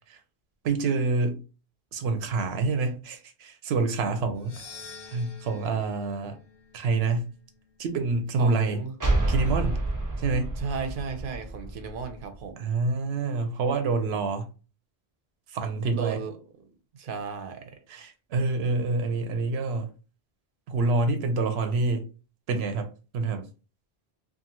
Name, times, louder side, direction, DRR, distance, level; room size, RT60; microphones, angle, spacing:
voice 1, 0.6-1.4 1.9-4.6 5.1-6.4 6.7-7.3 7.8-8.8 9.3-9.8 10.2-10.5 12.6-14.5 15.5-16.2 17.9-19.9 20.7-22.1 22.5-23.5, right 3 dB, 90° right, 0.9 m, -27 dB
sound 1, 4.3-8.7, left 5 dB, 50° left, 0.4 m, -49 dB
voice 2, 8.4-8.9 10.6-12.7 15.9-16.3 16.9-17.8, right 5 dB, 65° right, 0.7 m, -35 dB
sound 2, 9.0-12.5, right 2 dB, 35° right, 0.3 m, -29 dB
2.6 x 2.3 x 2.8 m
omnidirectional pair, 1.0 m